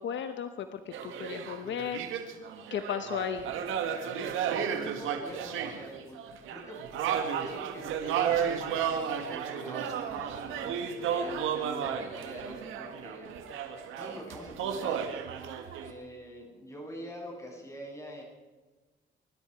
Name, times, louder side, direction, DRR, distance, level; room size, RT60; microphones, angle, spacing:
voice 1, 0.0-2.0 2.7-3.5, left 8 dB, 70° left, 8 dB, 1.0 m, -35 dB
sound 1, 0.9-15.9, right 8 dB, 90° right, 1.8 m, -33 dB
voice 2, 4.6-6.2 6.5-6.9 7.4-13.4 14.0-15.2 15.7-18.2, equal, 15° left, -2 dB, 7.6 m, -45 dB
24.5 x 12.5 x 4.6 m, 1.2 s
cardioid pair, 90°, 20 cm